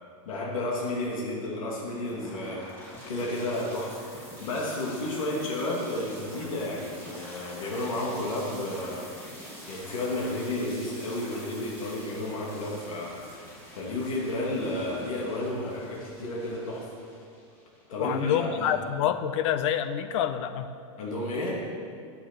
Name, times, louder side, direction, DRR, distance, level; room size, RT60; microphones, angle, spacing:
voice 1, 0.3-4.0 4.4-9.1 9.7-13.2 13.7-16.9 17.9-18.7 21.0-21.6, left 1 dB, 80° left, -3 dB, 2.7 m, -32 dB
sound 1, 2.1-18.1, equal, 15° left, 3.5 m, -46 dB
voice 2, 18.0-20.7, left 10 dB, 60° left, 11 dB, 0.9 m, -27 dB
14.0 x 7.2 x 6.2 m, 2.3 s
supercardioid pair, 140°, 17 cm